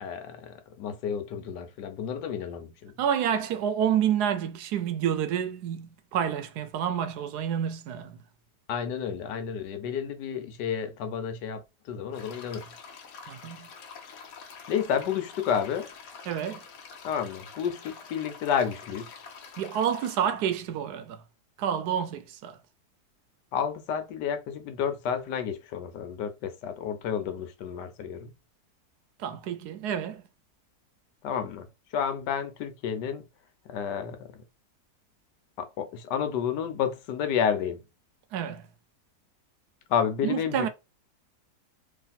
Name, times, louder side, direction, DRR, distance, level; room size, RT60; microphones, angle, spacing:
voice 1, 0.0-2.9 8.7-11.6 11.9-12.6 14.7-15.9 17.0-19.1 23.5-28.3 31.2-31.7 31.9-33.2 33.7-34.2 35.6-37.8 39.9-40.7, left 7 dB, 85° left, 1.3 m, -30 dB
voice 2, 3.0-8.2 13.3-13.7 16.3-16.6 19.6-21.2 21.6-22.6 29.2-30.2 38.3-38.6 40.2-40.7, right 9 dB, 75° right, 1.1 m, -29 dB
sound 1, 12.1-20.2, left 5 dB, 65° left, 1.2 m, -46 dB
3.2 x 2.5 x 4.1 m
omnidirectional pair, 1.8 m